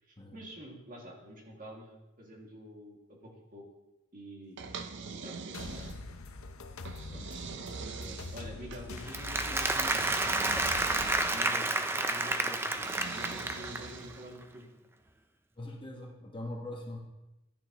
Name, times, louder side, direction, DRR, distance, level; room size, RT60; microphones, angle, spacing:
voice 1, 0.0-3.6 4.1-5.9 8.0-10.7 11.3-14.7, equal, 40° right, -2 dB, 2.1 m, -48 dB
sound 1, 4.6-6.3 6.9-8.9 9.7-11.6 12.8-14.4, right 5 dB, 55° right, 0.6 m, -43 dB
sound 2, 5.5-11.2, left 3 dB, 85° left, 0.7 m, -44 dB
voice 2, 7.7-8.2 15.6-17.0, left 1 dB, 25° left, 0 dB, 1.2 m, -43 dB
Applause, 9.0-14.0, right 2 dB, 10° right, 0.4 m, -30 dB
12.5 x 9.3 x 2.9 m, 0.97 s
head